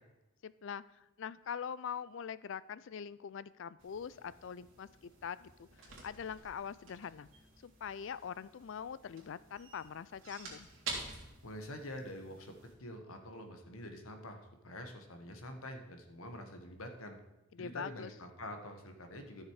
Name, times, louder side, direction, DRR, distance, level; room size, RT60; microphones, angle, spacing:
voice 1, 0.4-5.7 6.0-7.3 7.6-10.7 17.5-18.1, left 7 dB, 60° left, 18 dB, 0.4 m, -43 dB
sound 1, 3.8-12.7, right 3 dB, 60° right, 2.8 m, -49 dB
voice 2, 11.4-12.5 12.8-17.2 17.6-19.4, left 1 dB, 85° left, 5 dB, 1.5 m, -46 dB
13.0 x 6.5 x 4.8 m, 0.96 s
head